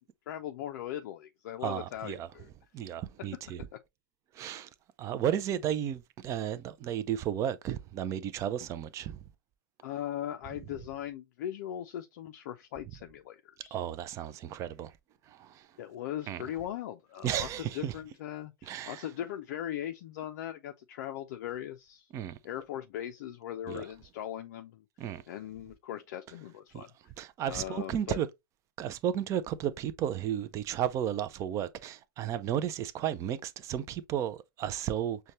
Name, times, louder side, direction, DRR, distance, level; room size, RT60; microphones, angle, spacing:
voice 1, 0.3-2.5 9.8-13.8 15.8-22.1 22.4-24.8 25.3-26.9 27.4-28.2, left 11 dB, 45° left, 0.5 m, -39 dB
voice 2, 1.6-2.3 2.7-3.6 4.3-4.7 5.0-9.2 13.7-14.9 15.3-15.7 16.3-16.4 17.2-17.9 18.6-19.1 22.1-22.4 23.7-23.8 25.0-25.2 26.7-26.8 27.2-28.3 28.8-35.2, right 10 dB, 25° right, 0.5 m, -33 dB
6.3 x 2.3 x 2.9 m
figure-of-eight pair, 105°, 12 cm